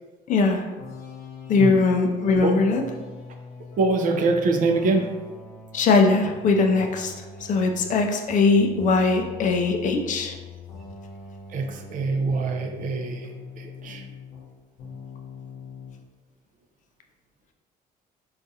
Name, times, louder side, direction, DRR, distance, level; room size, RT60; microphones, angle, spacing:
voice 1, 0.3-0.7 1.5-2.8 5.7-7.1 7.4-10.3, left 4 dB, 50° left, 4 dB, 0.4 m, -20 dB
sound 1, 0.8-14.5 14.8-16.0, left 4 dB, 75° left, 0.8 m, -42 dB
voice 2, 3.8-5.1 11.5-14.0, right 3 dB, 50° right, 4 dB, 0.4 m, -24 dB
3.7 x 2.4 x 2.7 m, 1.2 s
cardioid pair, 110°, 17 cm